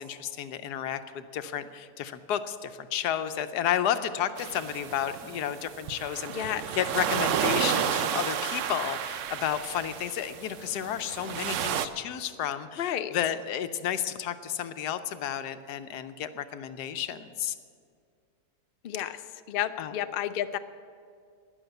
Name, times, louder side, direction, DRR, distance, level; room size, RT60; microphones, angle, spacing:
voice 1, 0.0-17.5 18.9-19.1 19.8-19.9, left 10 dB, 90° left, 11 dB, 1.3 m, -32 dB
sound 1, 4.4-11.9, right 9 dB, 65° right, 0.8 m, -32 dB
voice 2, 6.3-6.6 12.8-13.2 18.8-19.2 19.5-20.6, left 11 dB, 70° left, 10 dB, 0.5 m, -31 dB
12.5 x 10.5 x 8.0 m, 2.3 s
omnidirectional pair, 1.7 m